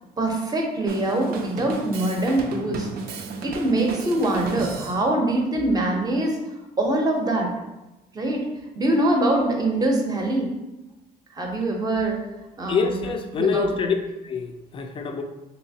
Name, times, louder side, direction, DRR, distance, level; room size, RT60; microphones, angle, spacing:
voice 1, 0.2-2.9 3.4-6.4 6.8-7.5 8.1-8.5 8.7-10.5 11.4-12.2 12.6-13.1 13.4-13.7, right 1 dB, 20° right, 1 dB, 0.6 m, -23 dB
Drum kit, 0.9-5.0, right 4 dB, 65° right, 0.4 m, -34 dB
voice 2, 12.7-13.9 14.2-15.2, left 5 dB, 30° left, 6 dB, 0.4 m, -25 dB
3.1 x 2.8 x 2.7 m, 1.0 s
cardioid pair, 110°, 17 cm